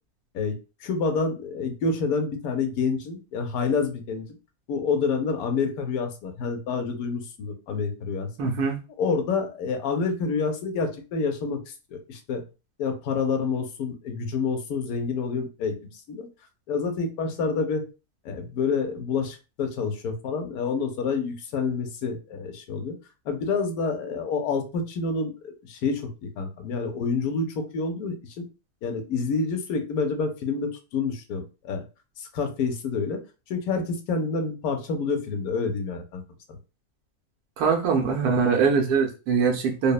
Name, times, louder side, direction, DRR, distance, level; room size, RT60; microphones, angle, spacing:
voice 1, 0.3-4.2 4.7-8.3 9.0-12.4 12.8-16.3 16.7-17.8 18.2-23.0 23.2-28.5 28.8-31.8 32.2-33.2 33.5-36.2, left 4 dB, 75° left, 5 dB, 1.1 m, -28 dB
voice 2, 8.4-8.8 37.6-39.9, right 5 dB, 85° right, 2 dB, 1.2 m, -22 dB
3.0 x 2.0 x 2.3 m, 0.31 s
omnidirectional pair, 1.6 m